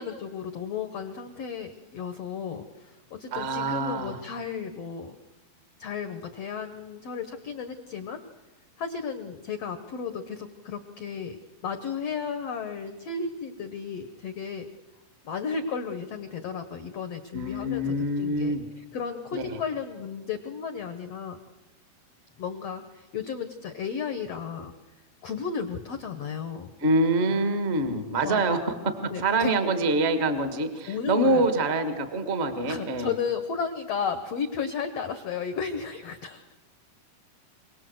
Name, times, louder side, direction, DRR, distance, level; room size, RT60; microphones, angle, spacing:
voice 1, 0.0-5.2 5.8-8.2 8.8-11.4 11.6-14.7 15.2-21.4 22.4-24.7 25.2-26.7 28.2-28.4 29.1-29.5 30.9-31.5 32.7-36.4, left 6 dB, 85° left, 8 dB, 1.4 m, -34 dB
voice 2, 3.3-4.2 17.3-18.7 19.3-19.6 26.8-33.1, right 2 dB, 60° right, 8 dB, 0.6 m, -25 dB
26.0 x 18.5 x 7.8 m, 1.2 s
omnidirectional pair, 4.4 m